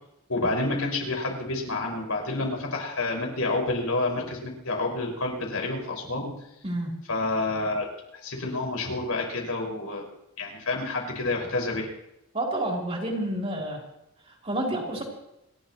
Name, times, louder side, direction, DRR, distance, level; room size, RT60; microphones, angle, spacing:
voice 1, 0.3-6.4 7.1-7.9 8.2-10.0 10.4-11.9, left 2 dB, 85° left, 0 dB, 5.8 m, -29 dB
voice 2, 6.6-7.0 12.3-13.8 14.3-15.0, right 1 dB, 30° right, -1 dB, 4.0 m, -29 dB
29.5 x 12.5 x 3.2 m, 0.85 s
head